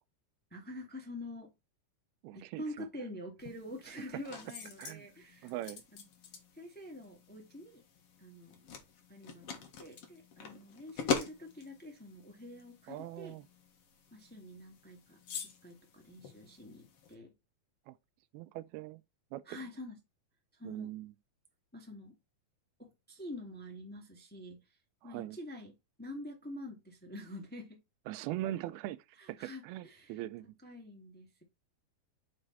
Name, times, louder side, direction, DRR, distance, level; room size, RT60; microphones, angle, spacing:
voice 1, 0.5-1.5 2.3-5.5 5.9-6.0 6.5-7.8 8.2-8.6 9.1-13.4 14.1-15.2 15.6-17.3 19.4-20.0 20.5-20.9 21.7-22.2 22.8-24.8 25.0-25.7 26.0-27.8 29.2-30.2 30.6-31.4, left 1 dB, 5° left, 1.0 m, -47 dB
voice 2, 2.2-2.6 4.8-5.1 5.4-5.8 12.9-13.4 17.9-18.0 18.3-19.0 19.3-19.6 20.6-21.1 25.0-25.4 28.1-30.5, right 14 dB, 85° right, 2.5 m, -41 dB
sound 1, 3.4-17.1, left 5 dB, 50° left, 2.0 m, -44 dB
7.2 x 4.8 x 4.0 m
omnidirectional pair, 4.4 m